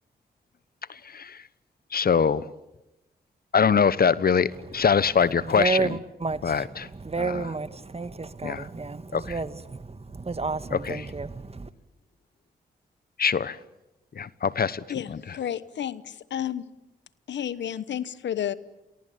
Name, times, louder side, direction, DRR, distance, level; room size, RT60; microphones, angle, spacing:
voice 1, 0.9-1.5 1.9-2.5 3.5-6.0 6.4-6.9 7.2-7.4 8.4-8.7 9.1-9.4 10.7-11.1 13.2-13.6 14.1-15.4, left 6 dB, 55° left, 1.1 m, -24 dB
voice 2, 5.4-11.7, right 4 dB, 35° right, 1.8 m, -31 dB
voice 3, 14.9-16.6 17.3-18.5, left 10 dB, 75° left, 1.1 m, -31 dB
29.5 x 23.0 x 8.6 m
supercardioid pair, 50°, 19 cm